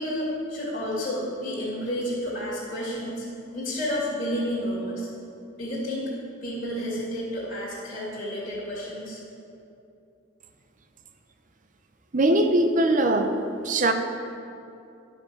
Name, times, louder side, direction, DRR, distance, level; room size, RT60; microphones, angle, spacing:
voice 1, 0.0-3.3 3.5-5.1 5.6-6.1 6.4-9.2, equal, 40° left, -9 dB, 2.6 m, -30 dB
voice 2, 12.1-13.4 13.6-13.9, right 1 dB, 40° right, 7 dB, 0.7 m, -21 dB
12.0 x 5.3 x 6.6 m, 2.6 s
head